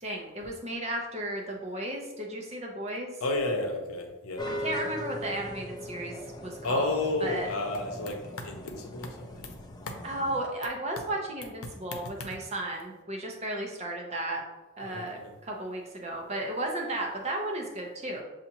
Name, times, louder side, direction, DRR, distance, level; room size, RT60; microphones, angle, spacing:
voice 1, 0.0-3.1 4.5-6.1 6.4-7.5 10.0-14.4 14.8-18.2, right 1 dB, 30° right, 0 dB, 0.7 m, -34 dB
voice 2, 3.2-4.5 6.6-9.5 9.9-10.0 14.8-15.3, left 2 dB, 85° left, 3 dB, 0.7 m, -32 dB
sound 1, 4.4-10.4, left 1 dB, 20° left, 0.3 m, -40 dB
6.9 x 2.5 x 2.9 m, 1.1 s
head